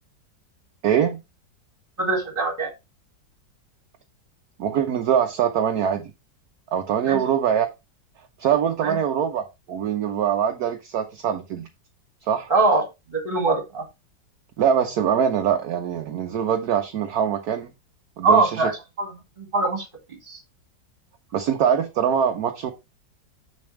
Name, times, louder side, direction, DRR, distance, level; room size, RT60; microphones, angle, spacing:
voice 1, 0.8-1.2 4.6-6.1 6.7-7.7 8.4-11.7 12.2-12.5 14.6-17.7 18.2-18.7 21.3-22.7, right 8 dB, 65° right, 1.2 m, -23 dB
voice 2, 2.0-2.7 7.1-7.2 8.8-9.0 12.5-12.8 13.1-13.8 18.2-19.1 19.4-20.4, right 3 dB, 30° right, 2.3 m, -22 dB
6.9 x 6.9 x 3.2 m
omnidirectional pair, 2.0 m